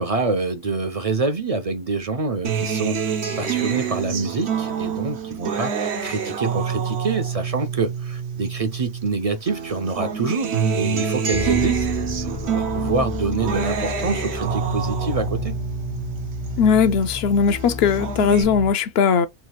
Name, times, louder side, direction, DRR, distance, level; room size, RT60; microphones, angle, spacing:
voice 1, 0.0-11.9 12.2-15.6, right 3 dB, 45° right, 0.5 m, -26 dB
Acoustic guitar, 2.4-9.1 9.5-17.1 17.5-18.4, right 7 dB, 80° right, 1.1 m, -27 dB
sound 1, 11.3-18.7, left 7 dB, 45° left, 0.3 m, -32 dB
voice 2, 16.6-19.3, left 6 dB, 70° left, 0.8 m, -18 dB
3.3 x 2.3 x 4.2 m
omnidirectional pair, 1.1 m